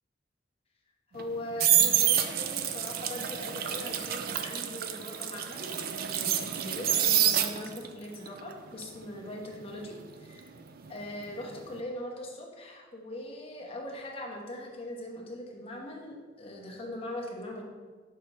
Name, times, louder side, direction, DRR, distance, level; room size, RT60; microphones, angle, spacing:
voice 1, 1.1-10.5 10.9-17.6, left 1 dB, 35° left, -1 dB, 1.0 m, -41 dB
sound 1, 1.2-7.9 8.3-11.2 11.4-11.8, right 10 dB, 55° right, 0.4 m, -28 dB
6.1 x 5.3 x 2.9 m, 1.4 s
head